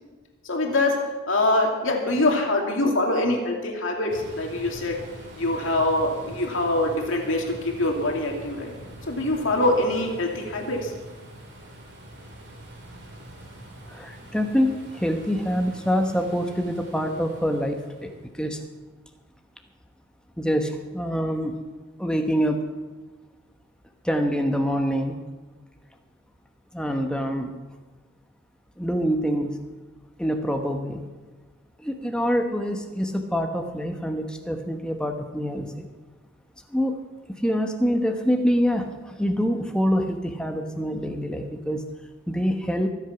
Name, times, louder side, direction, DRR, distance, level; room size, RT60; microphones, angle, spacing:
voice 1, 0.4-0.9 1.3-5.0 5.4-8.7 9.1-10.9, left 2 dB, 65° left, 1 dB, 2.6 m, -24 dB
sound 1, 4.1-18.3, right 1 dB, 55° right, 3.6 m, -44 dB
voice 2, 13.9-18.1 18.4-18.6 20.4-21.6 22.0-22.6 24.0-25.2 26.7-27.5 28.8-29.5 30.2-31.0 31.8-35.9 36.7-37.0 37.4-41.8 42.3-42.9, equal, 5° left, 4 dB, 1.0 m, -25 dB
23.5 x 8.1 x 5.9 m, 1.3 s
head